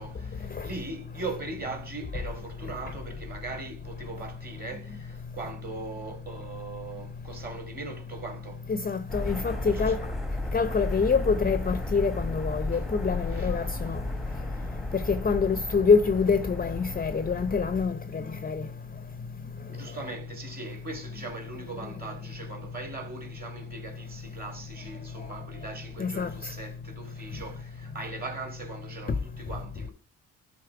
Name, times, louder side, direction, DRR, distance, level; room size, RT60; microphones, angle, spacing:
voice 1, 0.0-8.6 9.6-9.9 12.7-12.8 13.3-14.0 19.7-29.9, right 3 dB, 30° right, 2.7 m, -40 dB
voice 2, 8.7-10.0 10.5-14.0 14.9-18.6 26.0-26.3, left 5 dB, 30° left, 0.7 m, -26 dB
sound 1, 9.1-17.8, left 1 dB, ahead, 1.1 m, -34 dB
12.5 x 4.2 x 4.8 m
cardioid pair, 90°, 30 cm